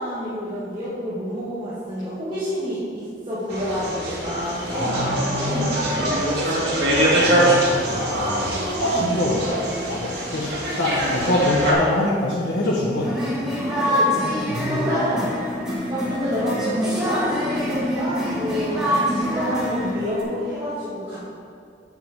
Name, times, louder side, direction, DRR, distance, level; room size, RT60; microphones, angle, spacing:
voice 1, 0.0-6.9 8.7-9.2 13.8-15.3 15.9-21.2, equal, 25° right, -13 dB, 2.0 m, -29 dB
sound 1, 3.5-11.7, right 1 dB, 65° right, 2.3 m, -23 dB
voice 2, 4.7-5.8 7.2-13.2 14.5-14.9, left 1 dB, 85° left, -5 dB, 1.3 m, -25 dB
sound 2, 13.0-20.2, equal, 5° right, 1.8 m, -25 dB
9.8 x 7.8 x 3.7 m, 2.3 s
head